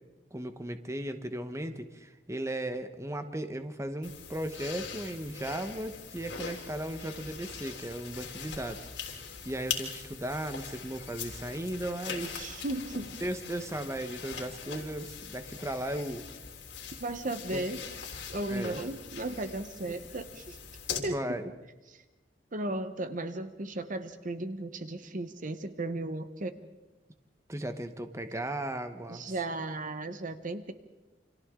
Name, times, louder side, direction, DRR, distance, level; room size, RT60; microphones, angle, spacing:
voice 1, 0.3-8.9 9.4-12.6 13.2-16.2 17.5-17.6 18.5-18.8 21.1-21.5 27.5-29.3, right 1 dB, 15° right, 8 dB, 1.1 m, -36 dB
sound 1, 4.0-21.0, left 6 dB, 80° left, 3.4 m, -42 dB
voice 2, 12.3-13.2 14.7-14.8 17.0-17.8 18.3-20.6 21.0-21.4 21.9-22.0 22.5-26.6 29.1-30.7, right 2 dB, 45° right, 10 dB, 1.0 m, -35 dB
29.0 x 26.5 x 3.8 m, 1.1 s
head